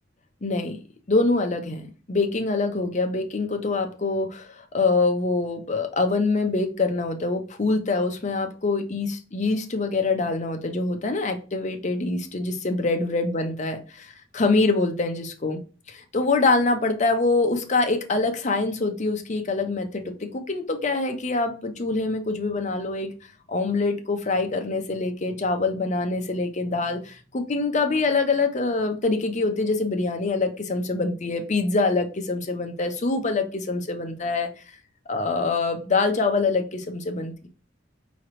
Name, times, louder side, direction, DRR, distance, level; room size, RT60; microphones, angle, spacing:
voice 1, 0.4-0.8 1.1-15.6 15.9-23.1 23.5-34.5 35.1-37.5, left 3 dB, 40° left, 6 dB, 0.7 m, -25 dB
5.0 x 3.0 x 3.0 m, 0.35 s
head